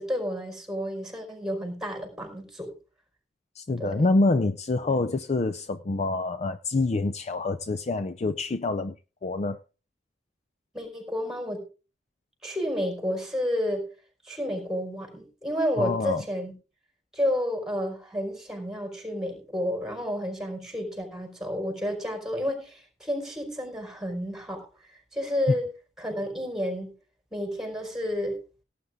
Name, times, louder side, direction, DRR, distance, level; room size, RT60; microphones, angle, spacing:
voice 1, 0.0-2.7 3.8-4.1 4.9-5.0 10.7-11.6 12.4-13.9 14.2-16.5 17.1-25.7 26.0-26.9 27.3-28.4, equal, 5° right, 4.8 m, -31 dB
voice 2, 3.6-9.0 9.2-9.6 15.8-16.2, left 3 dB, 40° left, 0.5 m, -26 dB
17.5 x 9.4 x 3.7 m
head